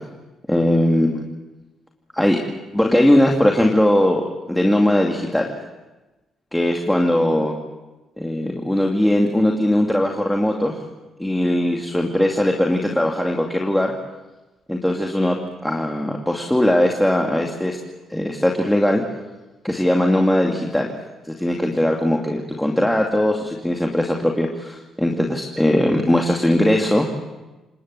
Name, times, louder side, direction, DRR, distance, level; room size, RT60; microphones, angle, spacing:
voice 1, 0.5-1.3 2.1-2.4 2.7-5.5 6.5-7.5 8.2-10.8 11.2-13.9 14.7-17.8 18.1-19.0 19.6-20.9 21.2-27.1, left 1 dB, 5° left, 0 dB, 2.4 m, -19 dB
28.0 x 19.0 x 7.6 m, 1.1 s
cardioid pair, 90°, 0 cm